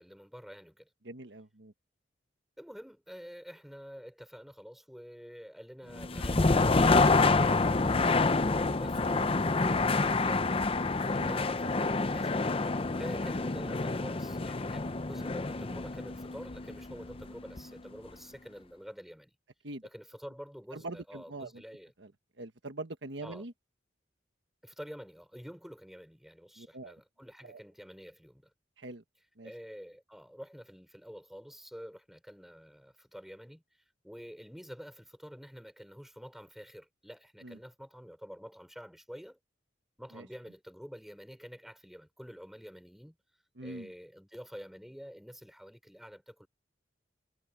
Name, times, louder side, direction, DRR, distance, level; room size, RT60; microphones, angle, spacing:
voice 1, 0.0-0.9 2.6-10.6 11.2-12.3 12.6-19.3 19.8-21.9 23.2-23.5 24.6-28.5 29.4-33.6 34.0-39.4 40.0-43.2 43.6-46.5, equal, ahead, 5.5 m, -48 dB
voice 2, 1.0-1.7 11.2-11.4 19.6-19.8 20.7-21.6 22.0-22.1 22.4-23.5 26.6-26.9 27.4-27.6 28.8-29.0 29.4-29.5 37.4-37.6 40.1-40.3 43.6-43.9, right 2 dB, 65° right, 1.4 m, -43 dB
sound 1, 5.9-17.8, left 3 dB, 30° left, 0.7 m, -28 dB
head